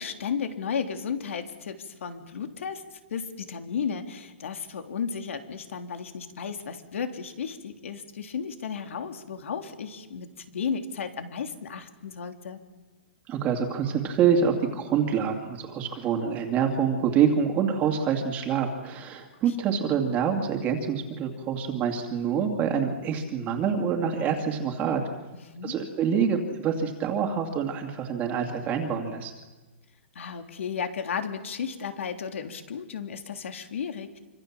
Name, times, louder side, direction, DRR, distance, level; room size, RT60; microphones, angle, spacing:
voice 1, 0.0-12.6 19.7-19.8 25.5-25.8 30.1-34.2, left 6 dB, 80° left, 6 dB, 3.4 m, -34 dB
voice 2, 13.3-25.0 25.6-29.3, right 7 dB, 20° right, 3 dB, 2.3 m, -26 dB
27.0 x 25.5 x 7.4 m, 1.2 s
hypercardioid pair, 160°, 7 cm